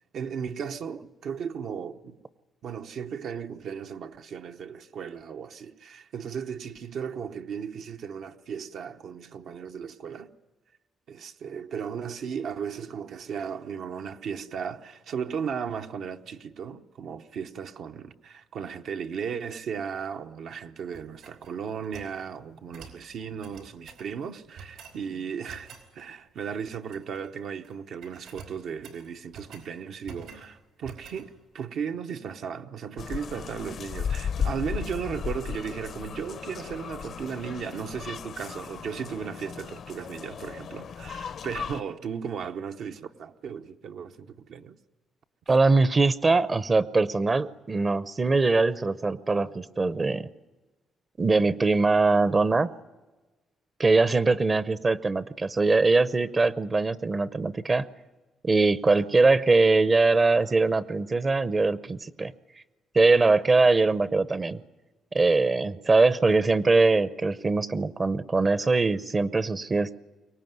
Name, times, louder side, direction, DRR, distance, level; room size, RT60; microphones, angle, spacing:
voice 1, 0.1-2.2 2.6-10.3 11.1-44.8, right 7 dB, 70° right, 0.9 m, -36 dB
sound 1, 20.9-22.2 22.7-23.0 23.4-24.1 24.6-25.0 25.5-25.9 26.7-27.3 27.5-27.8 28.0-29.7 30.0-30.5 30.8-31.3, right 5 dB, 85° right, 4.9 m, -47 dB
sound 2, 33.0-41.8, left 7 dB, 60° left, 0.8 m, -35 dB
voice 2, 45.5-50.3 51.2-52.7 53.8-57.9 58.4-62.3 62.9-64.6 65.1-70.0, right 3 dB, 30° right, 0.7 m, -22 dB
23.5 x 18.5 x 9.4 m
cardioid pair, 90°, 0 cm